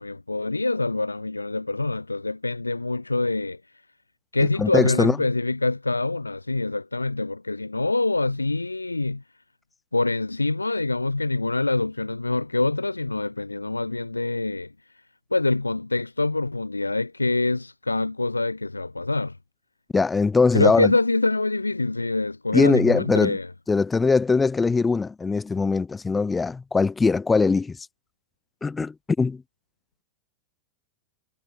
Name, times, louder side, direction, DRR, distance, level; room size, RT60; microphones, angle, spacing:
voice 1, 0.0-3.6 4.3-9.2 9.9-14.7 15.3-19.4 20.5-23.5, left 2 dB, 80° left, 2.1 m, -25 dB
voice 2, 4.6-5.2 19.9-20.9 22.5-23.4 23.7-27.8 28.6-29.4, left 4 dB, 15° left, 1.1 m, -21 dB
figure-of-eight pair, 90°, 0 cm